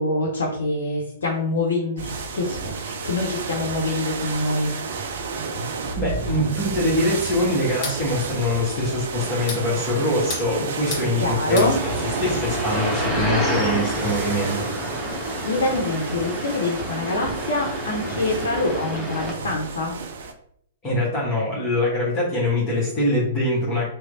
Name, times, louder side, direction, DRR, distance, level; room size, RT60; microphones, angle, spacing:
voice 1, 0.0-4.7 11.2-11.8 15.4-19.9, left 2 dB, 65° left, 0 dB, 0.6 m, -25 dB
sound 1, 2.0-20.3, right 4 dB, 60° right, 0.4 m, -31 dB
voice 2, 6.0-11.9 12.2-14.7 20.8-23.9, left 1 dB, 25° left, -7 dB, 1.2 m, -23 dB
sound 2, 7.6-8.0 9.2-9.7 10.1-11.1 11.3-11.7, left 3 dB, 40° left, 1.4 m, -32 dB
sound 3, 11.7-19.3, equal, 10° right, 1.0 m, -29 dB
3.1 x 2.0 x 3.8 m, 0.68 s
figure-of-eight pair, 110°, 0 cm